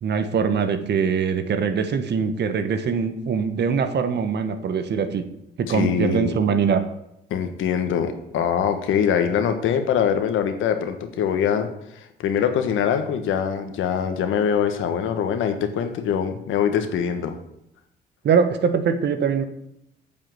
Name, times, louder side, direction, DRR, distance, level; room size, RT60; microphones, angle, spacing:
voice 1, 0.0-5.2 5.6-6.8 18.2-19.4, right 6 dB, 60° right, 9 dB, 1.3 m, -22 dB
voice 2, 5.7-6.3 7.3-17.4, left 8 dB, 85° left, 7 dB, 1.4 m, -23 dB
9.5 x 5.7 x 8.0 m, 0.80 s
cardioid pair, 90°, 20 cm